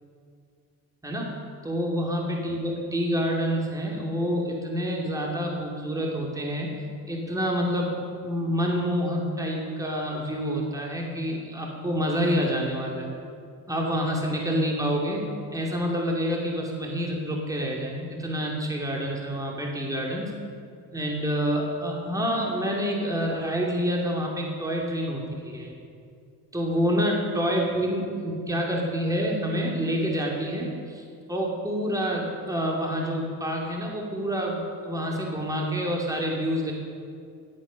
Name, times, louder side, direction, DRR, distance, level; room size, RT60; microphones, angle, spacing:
voice 1, 1.6-6.7 7.1-8.0 8.2-13.1 13.7-20.3 20.9-25.7 26.5-31.0 31.3-36.7, equal, 10° right, -1 dB, 2.7 m, -27 dB
16.5 x 8.5 x 6.4 m, 2.3 s
cardioid pair, 90°, 39 cm